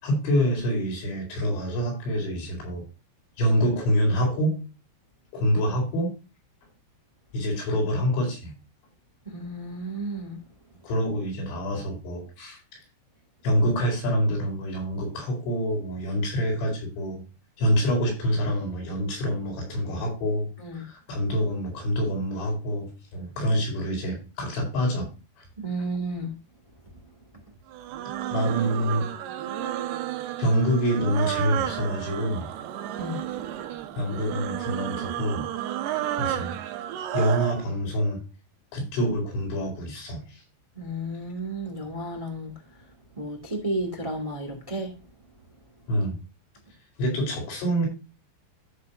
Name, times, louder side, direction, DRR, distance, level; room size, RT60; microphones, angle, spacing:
voice 1, 0.0-2.8 3.4-4.5 5.3-6.1 7.3-8.6 10.8-12.6 13.4-17.2 17.6-25.1 28.3-29.1 29.6-29.7 30.4-32.5 34.0-35.5 36.2-36.6 37.1-38.2 38.7-40.2 45.9-46.2 47.0-47.9, equal, 80° left, 7.0 m, -26 dB
voice 2, 9.2-10.4 20.6-20.8 25.6-26.3 33.0-33.2 40.7-42.5 43.1-44.9, right 1 dB, 15° right, 1.0 m, -32 dB
sound 1, 27.7-37.6, right 12 dB, 75° right, 2.8 m, -32 dB
14.0 x 6.7 x 2.7 m
omnidirectional pair, 5.2 m